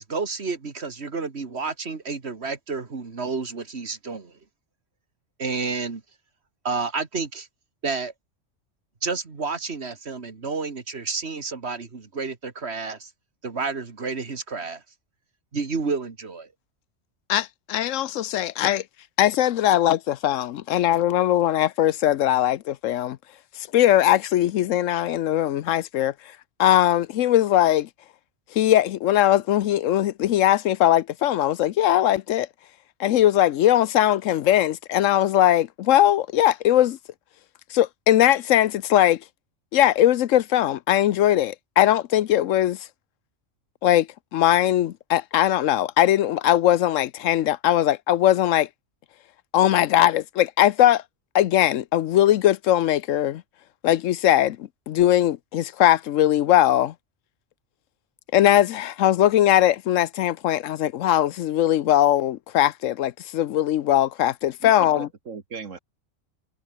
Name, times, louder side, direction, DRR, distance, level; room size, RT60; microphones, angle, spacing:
voice 1, 0.0-4.3 5.4-6.0 6.6-7.5 7.8-8.1 9.0-13.1 13.4-14.8 15.5-16.5, right 4 dB, 60° right, 2.3 m, -30 dB
voice 2, 17.3-18.8 19.2-23.2 23.7-26.1 26.6-27.9 28.5-32.5 33.0-37.0 37.7-39.2 39.7-42.8 43.8-44.1 44.3-48.7 49.5-51.0 51.3-53.4 53.8-56.9 58.3-65.1, left 12 dB, 85° left, 1.0 m, -20 dB
voice 3, 64.6-65.8, right 5 dB, 85° right, 2.3 m, -37 dB
omnidirectional pair, 1.3 m